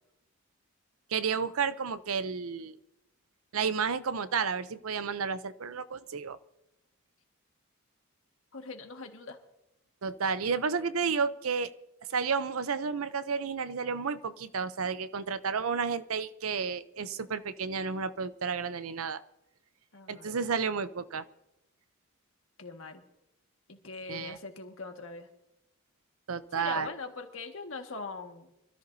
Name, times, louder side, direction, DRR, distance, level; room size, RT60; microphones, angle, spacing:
voice 1, 1.1-2.8 3.5-6.4 10.0-11.7 12.1-19.2 20.1-21.2 24.1-24.4 26.3-26.9, right 5 dB, 75° right, 14 dB, 0.6 m, -31 dB
voice 2, 8.5-9.4 19.9-20.3 22.6-23.0 23.7-25.3 26.5-28.5, left 4 dB, 65° left, 4 dB, 1.7 m, -41 dB
24.5 x 13.5 x 2.7 m, 0.89 s
head